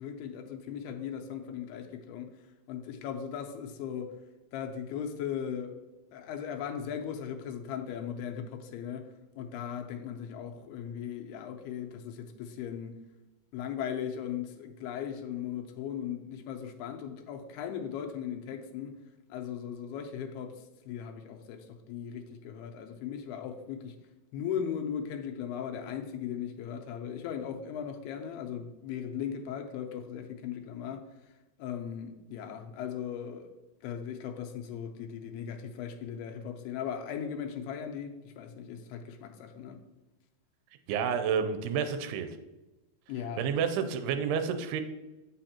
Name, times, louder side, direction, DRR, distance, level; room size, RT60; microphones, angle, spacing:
voice 1, 0.0-2.3 2.7-4.1 4.5-5.8 6.1-9.1 9.4-13.0 13.5-19.0 19.3-20.6 20.9-24.0 24.3-31.0 31.6-33.5 33.8-39.8 43.1-43.5, left 8 dB, 85° left, 2.6 m, -38 dB
voice 2, 40.9-42.3 43.4-44.8, right 7 dB, 90° right, 2.6 m, -29 dB
7.8 x 5.7 x 2.8 m
omnidirectional pair, 4.6 m